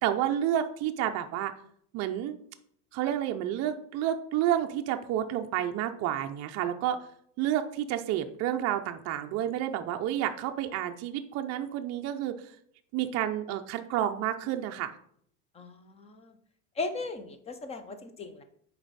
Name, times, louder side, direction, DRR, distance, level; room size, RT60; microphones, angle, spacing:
voice 1, 0.0-1.5 1.9-2.4 2.9-7.0 7.4-12.4 12.9-14.9, right 11 dB, 35° right, 5 dB, 0.5 m, -30 dB
voice 2, 15.5-16.4 16.8-18.4, left 3 dB, 15° left, 9 dB, 0.5 m, -37 dB
6.8 x 4.7 x 4.0 m, 0.65 s
supercardioid pair, 145°, 44 cm